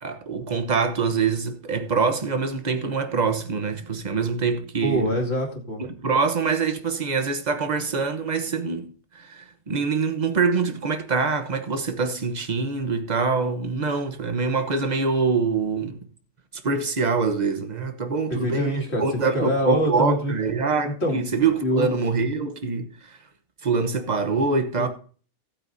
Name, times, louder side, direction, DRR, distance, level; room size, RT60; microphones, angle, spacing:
voice 1, 0.0-5.2 5.8-16.1 16.6-22.9 23.6-24.9, right 4 dB, 35° right, 1.0 m, -24 dB
voice 2, 4.8-5.8 18.3-20.3 20.8-21.2 21.6-21.9 24.8-24.9, equal, 45° left, 2.7 m, -25 dB
18.0 x 8.7 x 2.7 m
omnidirectional pair, 1.5 m